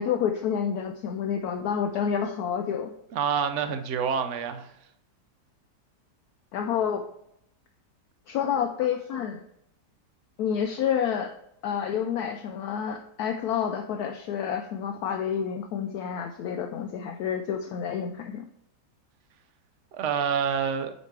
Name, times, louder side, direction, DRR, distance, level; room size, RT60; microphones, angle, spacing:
voice 1, 0.0-2.9 6.5-7.0 8.3-9.4 10.4-11.3 11.6-18.4, left 8 dB, 70° left, 1.0 m, -29 dB
voice 2, 3.1-4.7 19.9-20.9, right 7 dB, 60° right, 0.8 m, -27 dB
8.2 x 5.1 x 3.3 m
omnidirectional pair, 1.9 m